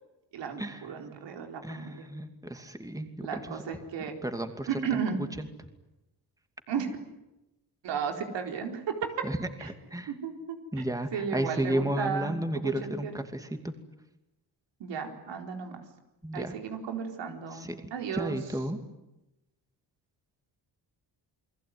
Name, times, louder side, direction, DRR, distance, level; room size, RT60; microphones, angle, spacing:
voice 1, 0.3-2.1 3.2-4.1 4.7-5.2 6.7-6.9 7.8-8.8 9.6-9.7 10.1-10.8 11.1-13.1 14.8-15.8 16.3-18.4, right 6 dB, 85° right, 4 dB, 4.4 m, -34 dB
voice 2, 1.6-3.6 4.2-5.0 5.4-5.5 9.2-10.1 10.7-13.7 16.2-16.5 17.5-17.7 18.1-18.8, right 1 dB, 10° right, 7 dB, 2.6 m, -33 dB
29.0 x 21.0 x 9.6 m, 0.94 s
cardioid pair, 105°, 42 cm